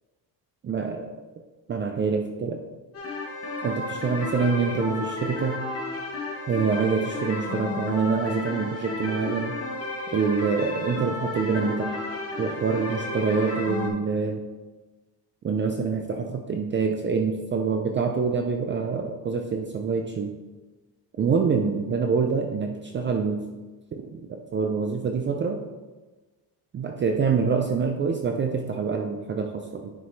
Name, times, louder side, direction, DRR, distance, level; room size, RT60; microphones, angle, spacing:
voice 1, 0.6-1.1 1.7-2.6 3.6-5.6 6.5-9.5 10.1-12.0 12.4-14.4 15.4-20.3 21.2-23.4 23.9-25.6 26.7-29.9, right 5 dB, 30° right, 3 dB, 0.5 m, -26 dB
sound 1, 2.9-13.9, left 2 dB, 40° left, 1.2 m, -32 dB
9.7 x 5.2 x 3.2 m, 1.2 s
cardioid pair, 155°, 37 cm